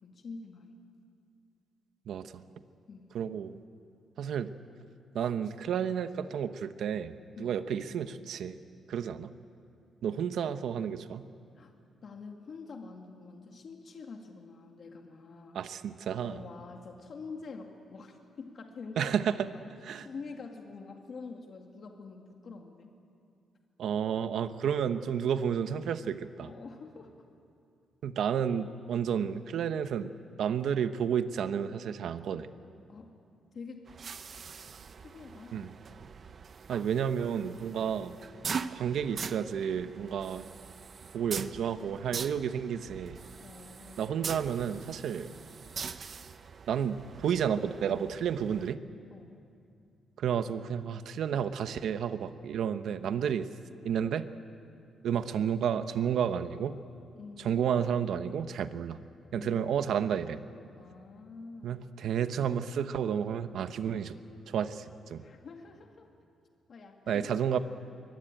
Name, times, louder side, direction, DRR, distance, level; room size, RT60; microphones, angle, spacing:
voice 1, 0.0-0.7 2.9-3.1 7.4-7.6 11.6-11.7 12.0-15.6 16.2-19.1 20.0-22.9 26.4-27.1 32.9-33.1 33.5-33.9 35.0-35.7 37.7-37.9 43.4-44.0 49.1-49.4 57.2-57.8 59.4-59.7 60.8-61.7 65.2-66.1 66.7-67.3, left 4 dB, 45° left, 3 dB, 2.1 m, -46 dB
voice 2, 2.1-2.4 3.1-3.6 4.2-4.5 5.1-8.6 8.9-9.3 10.0-11.2 15.5-16.4 19.0-19.5 19.8-20.1 23.8-26.5 28.0-30.1 30.4-32.5 35.5-35.7 36.7-38.2 38.7-40.5 41.1-43.2 44.0-45.3 46.7-48.8 50.2-53.5 53.8-54.3 55.0-56.8 57.4-59.0 59.3-60.4 61.6-64.2 64.5-65.2 67.1-67.6, right 8 dB, 70° right, 10 dB, 1.0 m, -31 dB
sound 1, 33.9-48.7, right 6 dB, 40° right, 0.8 m, -42 dB
23.0 x 23.0 x 9.1 m, 2.5 s
cardioid pair, 140°, 0 cm